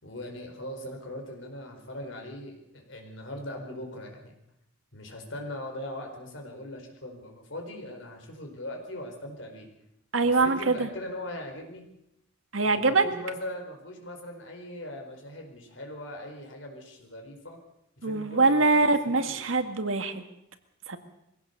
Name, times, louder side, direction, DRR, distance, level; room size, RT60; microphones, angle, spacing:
voice 1, 0.0-4.3 4.9-9.7 10.2-11.8 12.6-17.6 18.0-19.6, left 1 dB, 70° left, 3 dB, 4.8 m, -40 dB
voice 2, 10.1-10.9 12.5-13.0 18.0-20.2 20.9-21.0, right 3 dB, 85° right, 7 dB, 1.9 m, -23 dB
23.0 x 16.5 x 6.9 m, 0.84 s
head